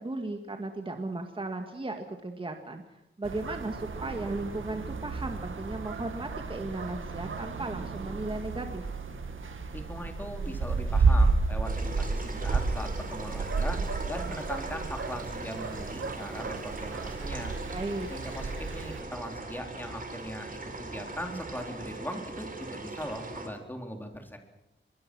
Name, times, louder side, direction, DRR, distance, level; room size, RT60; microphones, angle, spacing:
voice 1, 0.0-2.8 3.2-8.9 17.7-18.1, right 2 dB, 25° right, 5 dB, 1.9 m, -36 dB
sound 1, 3.2-19.0, right 4 dB, 90° right, 2.2 m, -31 dB
sound 2, 4.7-21.7, left 4 dB, 75° left, 7.4 m, -53 dB
voice 2, 9.7-13.8 14.1-17.5 18.1-24.4, equal, 10° left, 4 dB, 3.6 m, -39 dB
sound 3, 11.6-23.5, right 3 dB, 45° right, 4.2 m, -40 dB
24.5 x 23.0 x 6.2 m, 0.87 s
wide cardioid pair, 150°, 20 cm